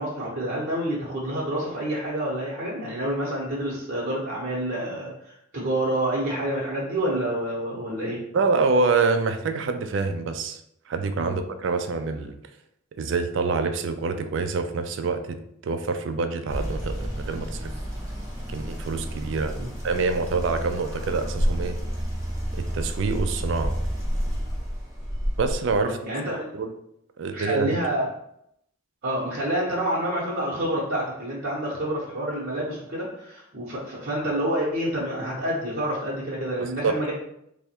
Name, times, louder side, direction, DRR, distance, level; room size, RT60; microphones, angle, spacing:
voice 1, 0.0-8.2 11.2-11.4 19.6-19.7 25.8-26.5 27.3-28.1 29.0-37.1, right 1 dB, 45° right, -7 dB, 0.8 m, -28 dB
voice 2, 8.3-10.6 10.9-12.4 13.0-17.7 18.5-19.5 19.8-21.8 22.5-23.7 25.4-26.0 26.5-26.7 27.2-27.8 36.6-36.9, right 4 dB, 60° right, 8 dB, 0.3 m, -26 dB
sound 1, 16.5-25.8, equal, 15° right, 0.8 m, -30 dB
3.3 x 2.1 x 4.3 m, 0.76 s
head